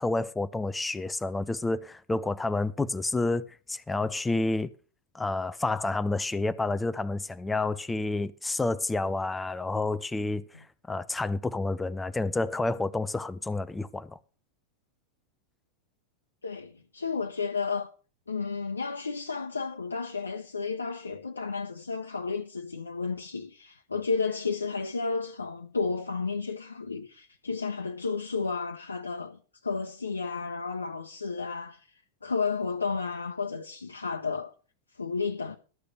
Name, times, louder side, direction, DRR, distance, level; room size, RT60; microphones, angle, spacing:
voice 1, 0.0-4.7 5.1-14.2, left 2 dB, 10° left, 0.5 m, -29 dB
voice 2, 16.4-17.9 18.3-31.9 32.2-34.5 35.0-35.6, left 4 dB, 75° left, 0.9 m, -32 dB
12.5 x 6.6 x 6.4 m
figure-of-eight pair, 90°, 0 cm